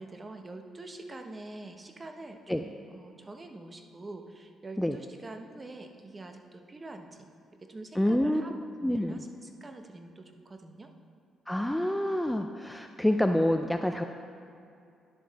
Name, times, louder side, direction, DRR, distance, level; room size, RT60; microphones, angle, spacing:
voice 1, 0.0-8.5 8.8-10.9, right 2 dB, 25° right, 5 dB, 0.8 m, -45 dB
voice 2, 8.0-8.4 8.8-9.1 11.5-14.0, left 1 dB, 5° left, 6 dB, 0.4 m, -27 dB
10.5 x 6.3 x 4.0 m, 2.5 s
cardioid pair, 90°, 0 cm